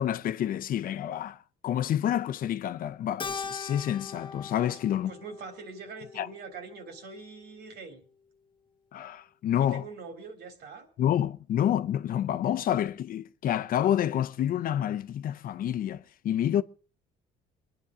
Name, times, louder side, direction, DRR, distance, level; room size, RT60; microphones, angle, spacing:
voice 1, 0.0-1.4 1.6-5.1 6.2-6.3 8.9-9.8 11.0-16.6, left 10 dB, 55° left, 0.7 m, -28 dB
Keyboard (musical), 3.2-7.8, left 5 dB, 30° left, 1.1 m, -42 dB
voice 2, 4.6-8.0 9.6-10.9, right 4 dB, 70° right, 3.3 m, -44 dB
23.5 x 10.0 x 5.0 m
cardioid pair, 110°, 17 cm